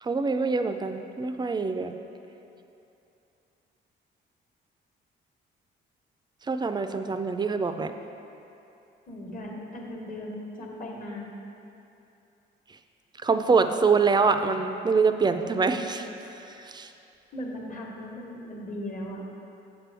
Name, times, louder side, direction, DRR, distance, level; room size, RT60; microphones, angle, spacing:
voice 1, 0.0-1.9 6.5-7.9 13.2-16.9, right 4 dB, 20° right, 8 dB, 0.3 m, -25 dB
voice 2, 9.1-11.3 17.3-19.3, left 1 dB, 40° left, -1 dB, 1.1 m, -37 dB
7.4 x 6.0 x 3.4 m, 2.8 s
cardioid pair, 90°, 20 cm